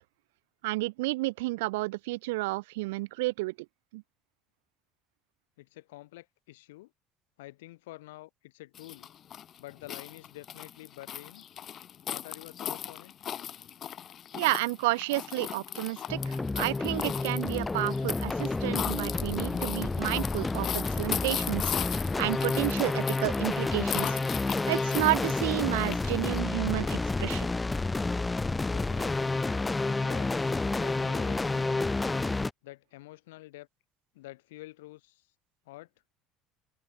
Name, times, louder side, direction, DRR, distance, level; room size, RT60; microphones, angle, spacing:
voice 1, 0.6-3.5 3.9-4.0 14.4-24.2 24.7-27.5, right 22 dB, 75° right, 2.3 m, -31 dB
voice 2, 5.6-6.9 7.4-9.1 9.6-11.4 12.1-13.1 28.7-29.2 29.9-32.1 32.6-33.7 34.1-35.2 35.7-35.9, left 18 dB, 75° left, 6.3 m, -48 dB
sound 1, 8.7-26.4, left 10 dB, 50° left, 3.7 m, -38 dB
sound 2, 16.1-32.5, left 3 dB, 15° left, 0.7 m, -30 dB
open air
hypercardioid pair, 65°, 0 cm